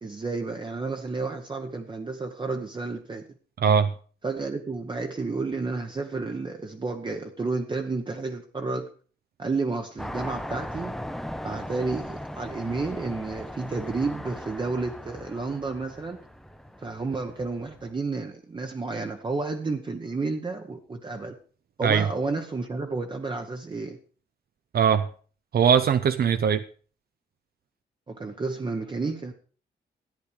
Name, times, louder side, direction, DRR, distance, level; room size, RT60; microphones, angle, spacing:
voice 1, 0.0-3.3 4.2-8.9 9.4-10.9 11.4-16.2 16.8-21.4 21.8-24.0 28.1-29.3, right 3 dB, 25° right, 1.0 m, -31 dB
voice 2, 3.6-3.9 21.8-22.1 24.7-25.1 25.5-26.6, right 7 dB, 55° right, 0.6 m, -21 dB
sound 1, 10.0-17.9, equal, ahead, 0.6 m, -38 dB
14.0 x 9.8 x 5.0 m
wide cardioid pair, 160°, 19 cm